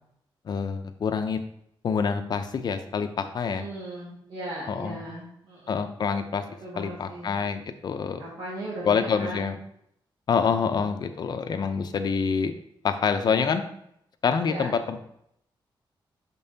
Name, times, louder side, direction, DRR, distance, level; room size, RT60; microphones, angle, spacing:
voice 1, 0.5-1.4 1.8-3.6 4.7-5.0 5.7-6.4 6.8-8.2 8.8-9.6 10.3-12.5 12.8-13.6 14.2-15.0, left 6 dB, 50° left, 8 dB, 0.5 m, -26 dB
voice 2, 3.5-5.9 6.6-7.3 8.2-9.5 14.5-14.7, right 1 dB, 70° right, -6 dB, 1.7 m, -37 dB
6.7 x 5.3 x 2.7 m, 0.74 s
wide cardioid pair, 165°, 9 cm